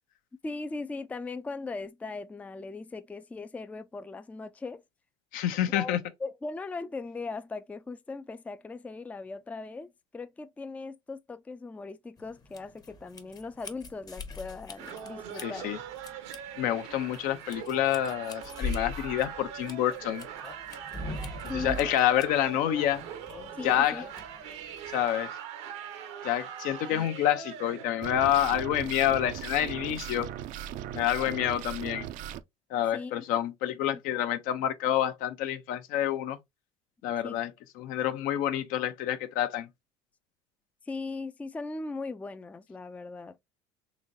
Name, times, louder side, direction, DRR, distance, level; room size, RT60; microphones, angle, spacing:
voice 1, 0.4-4.8 5.6-15.7 21.5-21.9 23.6-24.1 32.9-33.2 37.2-37.4 40.9-43.4, left 3 dB, 10° left, 0.3 m, -39 dB
voice 2, 5.3-6.0 15.4-15.8 16.6-20.3 21.5-23.0 23.6-24.0 24.9-25.4 26.2-30.3 30.9-32.1 32.7-36.4 37.0-39.7, left 11 dB, 65° left, 0.6 m, -28 dB
sound 1, 12.2-25.1, left 2 dB, 25° left, 0.8 m, -42 dB
sound 2, 14.8-27.9, right 8 dB, 80° right, 0.9 m, -42 dB
sound 3, 28.0-32.4, right 10 dB, 60° right, 0.5 m, -38 dB
3.9 x 3.0 x 2.6 m
supercardioid pair, 90°, 15 cm